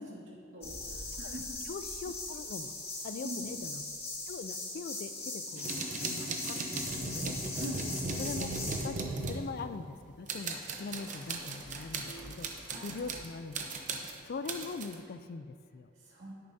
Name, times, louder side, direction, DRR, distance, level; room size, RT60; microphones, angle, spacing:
voice 1, 0.0-1.6 3.2-3.5 7.5-7.9 12.7-12.9 16.1-16.3, equal, 75° right, -5 dB, 2.3 m, -43 dB
sound 1, 0.6-8.8, left 2 dB, 30° left, 1.9 m, -40 dB
voice 2, 1.2-2.7 3.0-3.8 4.3-7.3 8.2-8.5 8.8-12.5 12.8-13.6 14.2-15.9, left 4 dB, 50° left, 10 dB, 0.3 m, -42 dB
sound 2, 5.6-10.0 10.3-13.3 13.5-15.0, right 3 dB, 40° right, 0.8 m, -37 dB
sound 3, 9.8-13.6 14.9-15.0, equal, 75° left, 1.1 m, -54 dB
10.5 x 9.7 x 2.7 m, 2.4 s
head